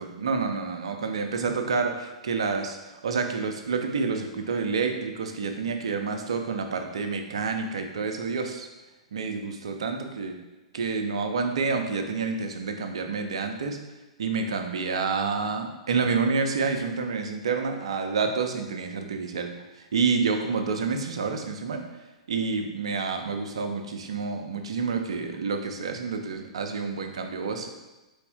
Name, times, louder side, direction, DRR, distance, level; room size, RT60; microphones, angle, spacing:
voice 1, 0.0-8.7 9.1-10.4 10.7-13.8 14.2-19.5 19.9-21.8 22.3-27.7, right 4 dB, 60° right, 5 dB, 0.5 m, -28 dB
4.2 x 3.5 x 3.5 m, 1.1 s
figure-of-eight pair, 105°, 3 cm